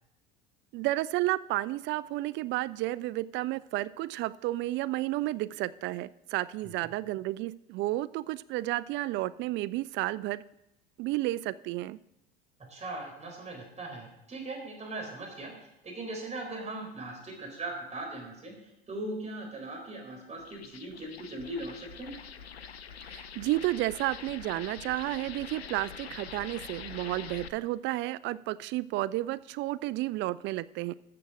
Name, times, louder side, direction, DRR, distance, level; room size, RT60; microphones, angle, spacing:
voice 1, 0.7-10.4 11.0-12.0 23.0-30.9, right 17 dB, 40° right, 17 dB, 0.4 m, -32 dB
voice 2, 12.7-22.1, right 2 dB, 20° right, 0 dB, 4.5 m, -39 dB
sound 1, 20.4-27.5, left 7 dB, 85° left, 0.7 m, -44 dB
13.5 x 6.9 x 5.0 m, 0.87 s
figure-of-eight pair, 75°, 31 cm